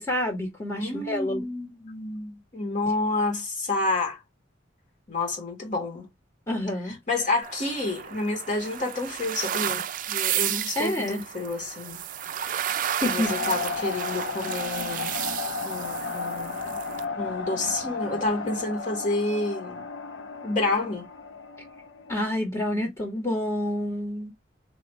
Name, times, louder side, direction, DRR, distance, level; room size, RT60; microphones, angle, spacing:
voice 1, 0.0-1.5 6.5-7.0 10.8-11.2 13.0-13.3 22.1-24.3, left 1 dB, 20° left, 1.9 m, -28 dB
voice 2, 0.7-4.2 5.1-6.1 6.9-12.0 13.0-15.1 15.6-16.8 17.2-19.8 20.4-21.1, left 2 dB, 40° left, 2.3 m, -29 dB
sound 1, 7.4-17.0, right 10 dB, 45° right, 0.4 m, -32 dB
sound 2, 13.2-22.2, left 4 dB, 70° left, 0.8 m, -34 dB
4.1 x 3.2 x 3.2 m
head